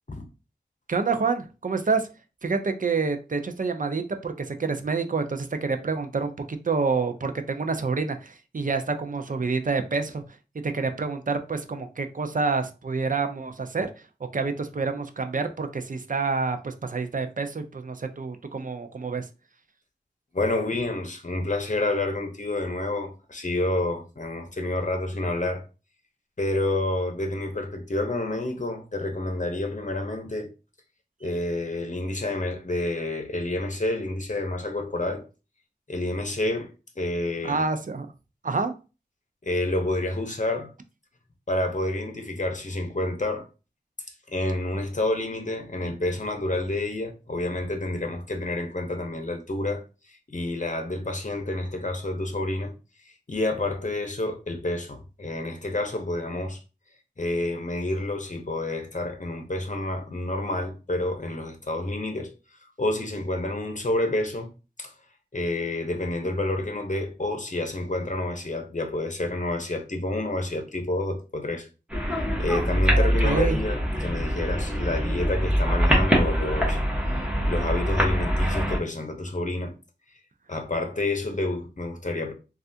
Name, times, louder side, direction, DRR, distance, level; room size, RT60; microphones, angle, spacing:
voice 1, 0.9-2.1 2.4-10.2 10.6-13.9 14.3-19.3 37.4-38.1 38.4-38.7 72.9-73.6, right 4 dB, 45° right, 0.5 m, -28 dB
voice 2, 20.3-25.6 26.4-30.5 31.2-35.3 35.9-37.6 39.4-40.7 41.5-43.5 44.3-52.7 53.3-56.6 57.2-62.3 62.8-64.5 64.8-64.9 65.3-71.7 72.4-76.8 77.4-79.7 80.5-82.3, left 2 dB, 45° left, 0.8 m, -29 dB
sound 1, 71.9-78.8, equal, 5° right, 1.2 m, -24 dB
3.2 x 2.4 x 2.7 m
wide cardioid pair, 40°, 18 cm